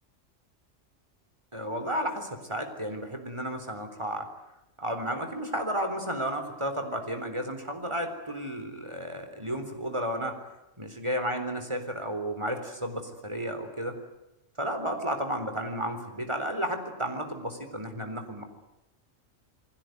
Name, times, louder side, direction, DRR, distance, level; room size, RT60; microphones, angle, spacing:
voice 1, 1.5-4.3 4.8-10.4 10.8-14.0 14.6-18.4, equal, 20° right, 6 dB, 4.0 m, -32 dB
29.0 x 20.5 x 9.5 m, 0.93 s
omnidirectional pair, 1.3 m